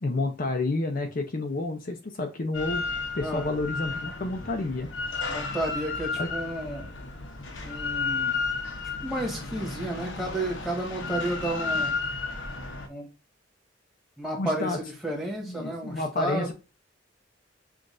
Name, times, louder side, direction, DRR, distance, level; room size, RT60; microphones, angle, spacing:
voice 1, 0.0-2.8 3.1-4.9 6.1-6.3 14.4-14.8 15.4-16.5, left 2 dB, 50° left, 4 dB, 0.6 m, -30 dB
Drill, 2.5-12.9, left 4 dB, 80° left, 0.9 m, -33 dB
voice 2, 5.3-6.9 7.6-8.3 8.8-11.9 12.9-13.1 14.2-16.5, right 1 dB, ahead, 0 dB, 1.4 m, -32 dB
5.9 x 2.5 x 2.5 m, 0.30 s
head